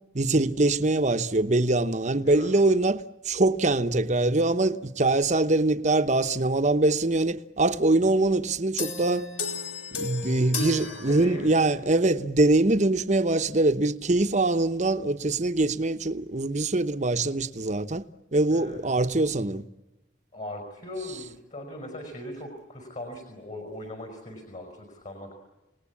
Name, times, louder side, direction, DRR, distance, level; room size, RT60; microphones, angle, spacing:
voice 1, 0.1-9.3 9.9-18.0 18.3-19.6, right 2 dB, 40° right, 1.0 m, -23 dB
voice 2, 2.2-2.5 8.0-8.1 11.0-11.9 18.5-18.8 20.3-25.3, left 1 dB, 40° left, 5.4 m, -39 dB
sound 1, 8.8-11.8, left 4 dB, 75° left, 4.3 m, -34 dB
29.0 x 19.5 x 8.6 m
head